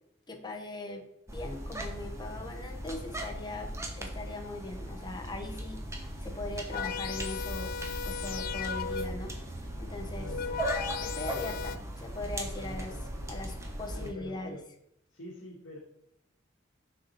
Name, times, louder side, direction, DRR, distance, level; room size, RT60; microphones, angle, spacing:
voice 1, 0.3-3.7 4.0-7.7 8.0-9.3 9.8-10.3 11.0-12.9 13.3-14.6, left 2 dB, 20° left, 2 dB, 1.1 m, -40 dB
sound 1, 1.3-14.1, right 1 dB, 15° right, 1.0 m, -38 dB
sound 2, 6.7-9.3 10.0-11.8, left 6 dB, 45° left, 0.4 m, -36 dB
voice 2, 10.2-10.7 12.6-13.6 13.9-14.7 15.1-15.8, equal, 75° left, -3 dB, 1.5 m, -46 dB
6.4 x 5.9 x 4.2 m, 0.78 s
head